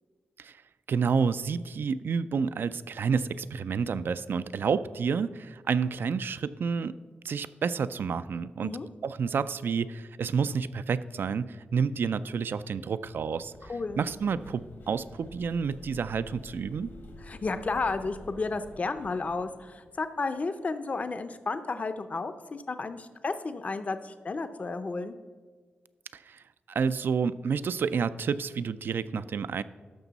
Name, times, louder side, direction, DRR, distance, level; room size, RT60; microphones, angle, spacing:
voice 1, 0.9-6.9 7.2-8.7 9.0-13.5 14.0-16.9 26.1-26.4 26.7-29.6, right 6 dB, 70° right, 15 dB, 0.3 m, -29 dB
sound 1, 13.4-20.3, left 2 dB, 75° left, 1.6 m, -49 dB
voice 2, 13.7-14.0 17.2-25.1, left 3 dB, 40° left, 10 dB, 0.5 m, -32 dB
13.0 x 6.0 x 4.0 m, 1.5 s
wide cardioid pair, 110°, 4 cm